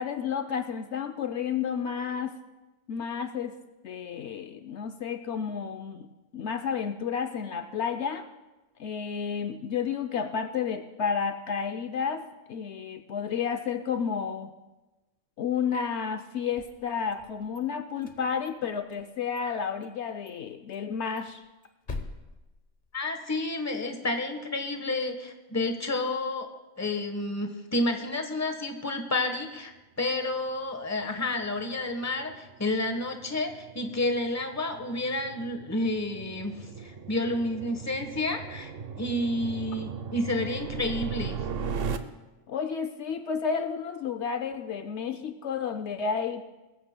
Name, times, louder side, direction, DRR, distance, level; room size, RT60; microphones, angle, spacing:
voice 1, 0.0-2.4 2.9-3.6 3.8-6.1 6.3-8.3 8.8-14.5 15.4-21.4 42.5-46.5, left 6 dB, 70° left, 8 dB, 0.9 m, -31 dB
sound 1, 16.4-17.6 18.0-19.1 19.4-19.5 19.8-20.0 20.3-20.4 20.7-23.3, left 3 dB, 40° left, 1.1 m, -44 dB
voice 2, 22.9-26.5 26.8-29.7 30.0-38.7 39.0-41.4, left 2 dB, 15° left, 5 dB, 1.1 m, -30 dB
sound 2, 30.8-42.0, right 6 dB, 55° right, 0.8 m, -38 dB
22.0 x 14.5 x 2.2 m, 1.1 s
omnidirectional pair, 1.3 m